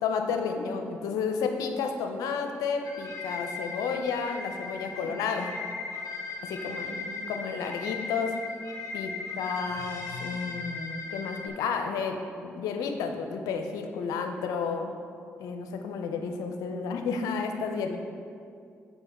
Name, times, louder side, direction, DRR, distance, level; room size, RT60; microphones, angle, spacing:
voice 1, 0.0-5.5 6.5-7.0 7.3-8.3 8.9-12.2 12.4-14.9 15.4-18.0, left 5 dB, 85° left, 5 dB, 0.6 m, -31 dB
sound 1, 2.8-11.5, left 4 dB, 60° left, 1.1 m, -38 dB
voice 2, 6.3-7.5 9.1-9.4, right 4 dB, 75° right, -1 dB, 0.6 m, -47 dB
6.9 x 5.7 x 4.2 m, 2.4 s
supercardioid pair, 50°, 6 cm